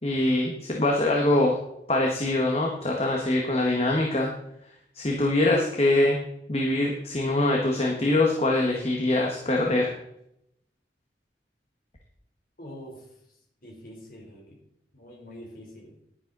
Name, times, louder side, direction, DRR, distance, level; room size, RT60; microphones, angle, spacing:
voice 1, 0.0-1.6 1.9-4.3 4.9-6.2 6.5-9.9, left 2 dB, 35° left, 0 dB, 1.5 m, -23 dB
voice 2, 12.6-13.0 13.6-14.6 14.9-15.9, equal, 50° left, -2 dB, 3.8 m, -44 dB
11.0 x 10.0 x 4.0 m, 0.77 s
head